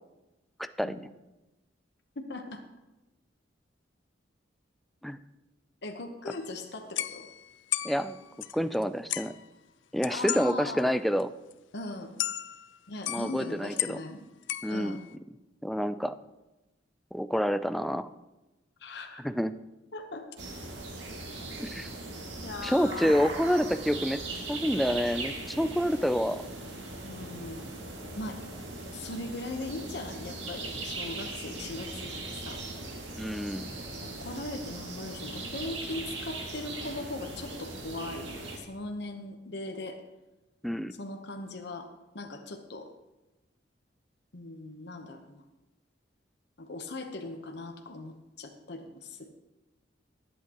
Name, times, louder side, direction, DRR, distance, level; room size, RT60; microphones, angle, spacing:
voice 1, 0.6-1.0 5.0-5.2 7.8-8.2 8.5-9.3 9.9-11.3 13.1-14.0 14.6-15.0 15.6-16.1 17.1-18.1 19.2-19.5 21.6-21.9 22.6-24.2 24.5-26.4 33.2-33.6 40.6-40.9, equal, ahead, 11 dB, 0.3 m, -28 dB
voice 2, 2.2-2.6 5.8-7.3 10.1-10.9 11.7-12.2 12.9-14.3 14.7-15.0 18.8-19.2 19.9-20.2 22.4-23.1 27.0-27.7 28.1-28.4 28.9-32.6 34.0-40.0 41.0-41.9 42.1-42.9 44.3-45.4 46.6-49.3, left 2 dB, 60° left, 3 dB, 1.0 m, -39 dB
sound 1, 6.3-6.5 7.0-8.8 9.1-9.5 10.0-10.5 10.8-10.9 11.2-11.3 11.5-11.6 12.2-12.8 13.0-14.1 14.4-15.1, left 14 dB, 80° left, 0.4 m, -35 dB
sound 2, 20.4-38.6, right 2 dB, 75° right, 2.2 m, -39 dB
19.5 x 8.4 x 3.0 m, 1.0 s
head